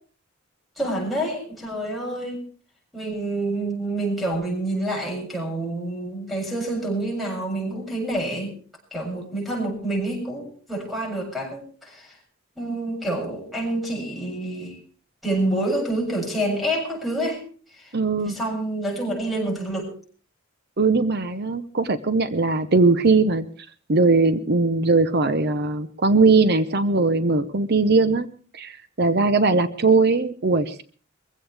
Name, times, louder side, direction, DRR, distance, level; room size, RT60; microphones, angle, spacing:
voice 1, 0.8-2.4 2.9-8.5 8.9-12.2 12.6-14.8 15.2-17.4 17.7-17.9 18.2-19.9, right 1 dB, ahead, -3 dB, 7.3 m, -27 dB
voice 2, 17.9-18.4 20.8-23.4 23.9-28.3 28.5-30.8, right 3 dB, 50° right, 12 dB, 0.9 m, -20 dB
23.0 x 16.0 x 3.4 m, 0.41 s
head